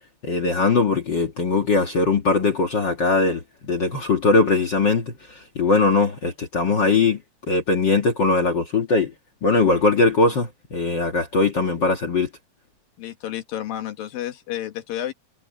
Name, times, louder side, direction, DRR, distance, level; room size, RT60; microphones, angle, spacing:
voice 1, 0.2-7.2 7.5-9.1 9.4-12.3, left 3 dB, 55° left, 1.3 m, -20 dB
voice 2, 13.0-15.1, left 12 dB, 70° left, 3.1 m, -31 dB
omnidirectional pair, 4.4 m